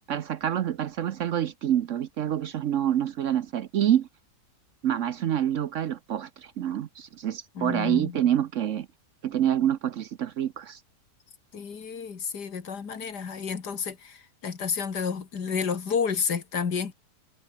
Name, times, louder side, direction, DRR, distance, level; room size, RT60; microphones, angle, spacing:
voice 1, 0.1-4.1 4.8-8.9 9.2-10.8, right 10 dB, 60° right, 0.9 m, -27 dB
voice 2, 7.6-8.2 11.5-16.9, left 6 dB, 75° left, 2.6 m, -30 dB
omnidirectional pair, 1.8 m